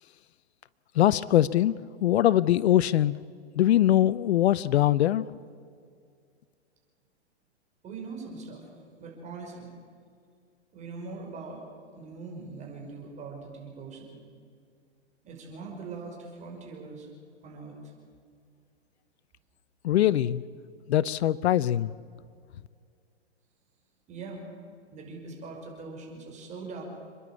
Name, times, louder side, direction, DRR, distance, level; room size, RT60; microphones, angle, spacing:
voice 1, 1.0-1.7 2.0-3.1 3.6-5.2 19.8-20.4 20.9-21.9, left 12 dB, 65° left, 18 dB, 0.7 m, -22 dB
voice 2, 7.8-8.7 9.0-9.7 10.7-11.6 11.9-14.2 15.2-17.1 17.4-17.9 24.1-24.4 24.9-26.8, right 4 dB, 20° right, 0 dB, 5.7 m, -41 dB
29.0 x 11.0 x 8.5 m, 2.2 s
hypercardioid pair, 145°, 34 cm